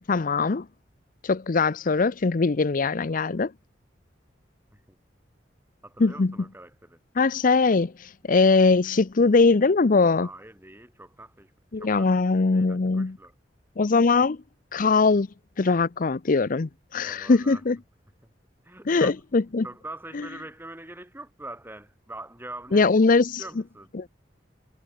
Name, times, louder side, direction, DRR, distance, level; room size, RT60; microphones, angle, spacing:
voice 1, 0.1-0.7 1.2-3.5 6.0-6.3 7.2-10.3 11.7-13.2 13.8-14.4 14.7-15.3 15.6-17.8 18.9-19.6 20.1-20.3 22.7-23.4 24.0-24.1, left 4 dB, 50° left, 0.6 m, -21 dB
voice 2, 5.8-7.0 10.2-12.1 12.3-13.3 16.9-17.6 18.6-19.1 19.6-22.9 23.4-23.9, right 2 dB, 10° right, 6.5 m, -43 dB
head